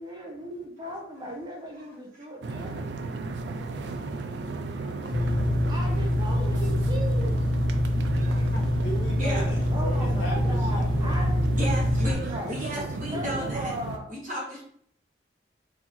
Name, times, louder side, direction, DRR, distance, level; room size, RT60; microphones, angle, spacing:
voice 1, 0.0-2.9 5.7-7.4 9.7-11.5 12.2-12.5 13.1-14.0, equal, 20° right, 0 dB, 0.6 m, -37 dB
sound 1, 2.4-14.0, right 3 dB, 60° right, 0.4 m, -34 dB
voice 2, 4.7-5.8 8.8-11.3, right 2 dB, 85° left, -2 dB, 1.1 m, -38 dB
sound 2, 5.1-12.1, left 1 dB, 20° left, 0.6 m, -25 dB
voice 3, 8.1-8.6 9.2-9.5 11.6-13.7 14.1-14.6, equal, 40° right, -5 dB, 1.3 m, -34 dB
4.0 x 2.7 x 3.0 m, 0.66 s
head